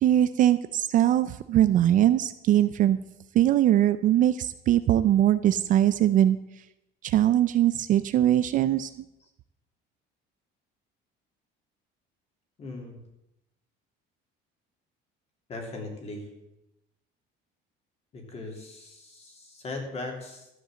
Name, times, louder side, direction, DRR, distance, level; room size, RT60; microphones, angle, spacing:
voice 1, 0.0-3.0 3.3-6.4 7.0-8.9, right 12 dB, 40° right, 12 dB, 0.4 m, -21 dB
voice 2, 12.6-13.0 15.5-16.3 18.1-20.5, left 2 dB, 30° left, 2 dB, 2.9 m, -39 dB
13.0 x 8.8 x 7.6 m, 0.89 s
cardioid pair, 170°, 20 cm